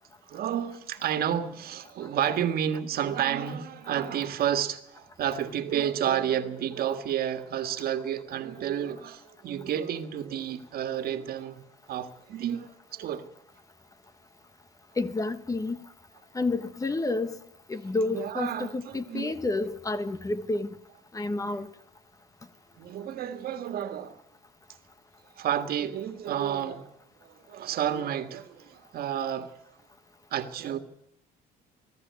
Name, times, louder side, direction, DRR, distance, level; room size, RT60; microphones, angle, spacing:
voice 1, 0.3-11.6 11.9-13.3 18.1-19.3 22.8-24.2 25.4-26.9 27.2-29.5 30.3-30.8, right 9 dB, 65° right, 1.8 m, -30 dB
voice 2, 15.0-15.9 16.3-17.4 17.7-20.8 21.1-21.7, left 2 dB, 20° left, 1.1 m, -30 dB
22.0 x 13.5 x 9.6 m
cardioid pair, 110°, 17 cm